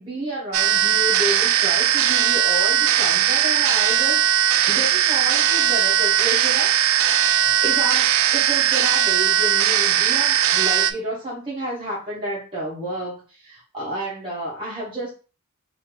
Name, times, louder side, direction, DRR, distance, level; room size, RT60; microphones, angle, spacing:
voice 1, 0.0-6.7 7.2-15.2, right 1 dB, 25° right, -7 dB, 1.0 m, -31 dB
sound 1, 0.5-10.9, right 10 dB, 65° right, 0.3 m, -19 dB
3.7 x 2.7 x 3.0 m, 0.35 s
head